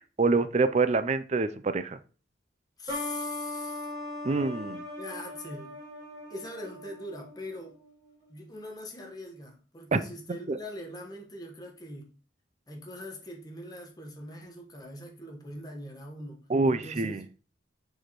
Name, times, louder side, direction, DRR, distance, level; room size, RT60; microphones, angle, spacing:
voice 1, 0.2-2.0 4.2-4.8 9.9-10.0 10.5-10.6 16.5-17.2, right 3 dB, 35° right, 0.4 m, -26 dB
voice 2, 2.8-3.9 5.0-5.7 6.3-7.8 8.3-12.1 12.7-17.4, left 1 dB, 20° left, 1.2 m, -42 dB
sound 1, 2.9-8.3, left 1 dB, 20° right, 2.9 m, -39 dB
6.7 x 4.7 x 3.0 m
head